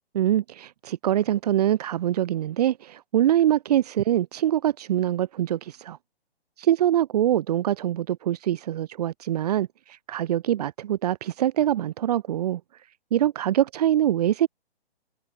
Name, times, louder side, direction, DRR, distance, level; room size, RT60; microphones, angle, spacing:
voice 1, 0.1-6.0 6.6-12.6 13.1-14.5, right 12 dB, 40° right, 5.8 m, -24 dB
hypercardioid pair, 160°, 32 cm